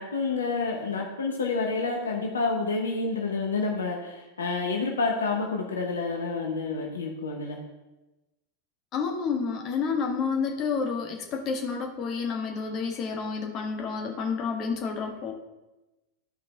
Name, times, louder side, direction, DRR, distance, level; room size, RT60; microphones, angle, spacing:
voice 1, 0.0-7.6, left 4 dB, 70° left, 1 dB, 1.1 m, -29 dB
voice 2, 8.9-15.3, left 5 dB, 35° left, 2 dB, 1.3 m, -29 dB
13.0 x 4.8 x 3.6 m, 1.0 s
figure-of-eight pair, 90°, 0 cm